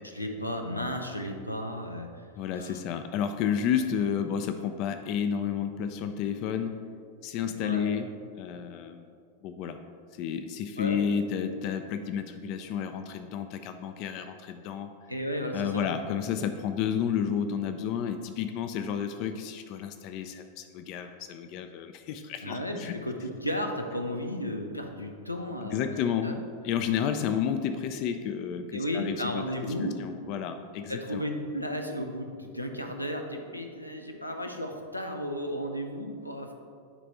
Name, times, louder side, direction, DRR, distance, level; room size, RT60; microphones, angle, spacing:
voice 1, 0.0-2.3 2.6-2.8 7.4-7.9 10.8-11.0 15.1-15.9 22.4-26.0 26.2-26.4 26.8-27.0 28.7-29.9 30.9-36.5, equal, 90° left, 3 dB, 0.6 m, -34 dB
voice 2, 2.3-6.8 7.2-8.1 8.4-9.1 9.4-9.8 10.1-14.9 15.5-22.9 25.7-29.7 30.0-31.2, left 8 dB, 40° left, 8 dB, 0.4 m, -31 dB
10.0 x 3.3 x 4.1 m, 2.2 s
figure-of-eight pair, 90°, 0 cm